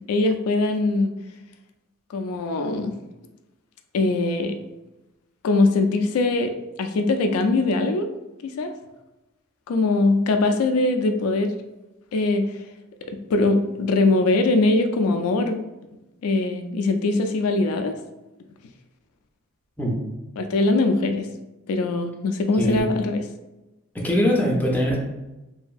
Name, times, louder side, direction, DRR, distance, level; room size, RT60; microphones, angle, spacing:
voice 1, 0.1-1.1 2.1-2.9 3.9-4.5 5.4-8.1 8.4-8.7 9.7-11.6 12.1-12.6 13.1-15.6 16.2-18.0 20.4-21.3 21.7-23.3, left 2 dB, 90° left, 7 dB, 0.3 m, -22 dB
voice 2, 22.6-22.9 23.9-25.0, equal, 10° left, -3 dB, 0.4 m, -22 dB
2.8 x 2.5 x 2.3 m, 1.0 s
head